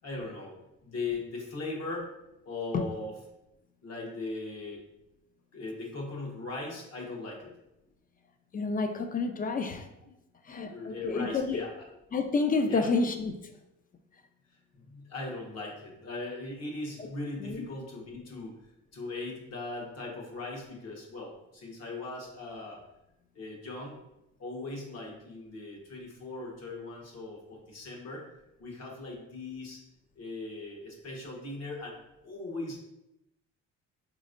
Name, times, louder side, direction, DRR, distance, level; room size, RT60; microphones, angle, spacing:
voice 1, 0.0-0.6 0.8-2.1 2.4-3.1 3.8-4.8 5.5-7.5 10.0-10.1 10.7-11.9 12.7-12.9 14.7-18.5 18.9-22.8 23.3-24.0 24.4-28.2 28.6-29.8 30.1-32.8, left 2 dB, 55° left, -1 dB, 1.2 m, -39 dB
voice 2, 8.5-9.8 10.5-11.6 12.1-13.3 17.4-17.7, left 4 dB, 30° left, 6 dB, 0.4 m, -29 dB
4.2 x 3.1 x 2.5 m, 0.89 s
cardioid pair, 90°, 30 cm